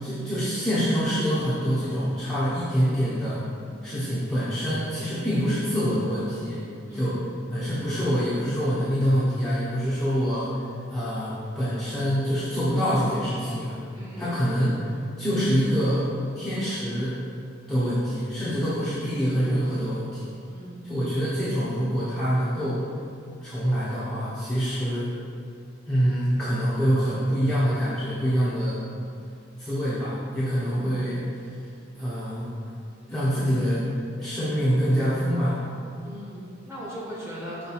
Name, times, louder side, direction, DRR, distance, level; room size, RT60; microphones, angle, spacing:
voice 1, 0.0-3.4 3.8-6.6 6.9-7.2 7.5-13.8 14.2-14.9 15.2-16.1 16.3-17.2 17.7-20.3 20.8-22.8 23.4-25.1 25.9-28.8 29.6-31.5 32.0-32.5 33.1-33.8 34.2-35.6, equal, ahead, -12 dB, 1.0 m, -25 dB
voice 2, 6.9-7.3 13.9-14.5 18.7-19.0 20.5-20.9 30.5-31.1 36.0-37.7, equal, 15° right, -7 dB, 1.4 m, -39 dB
6.0 x 3.6 x 5.6 m, 2.4 s
head